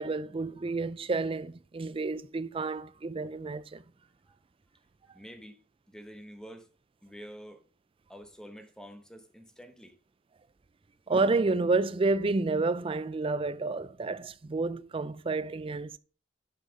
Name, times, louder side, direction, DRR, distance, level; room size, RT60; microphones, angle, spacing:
voice 1, 0.0-3.8 11.1-16.0, right 3 dB, 30° right, 0.4 m, -30 dB
voice 2, 5.1-5.6 5.9-6.7 7.0-7.6 8.1-10.0, equal, 5° left, 1.0 m, -47 dB
8.2 x 5.9 x 5.2 m
head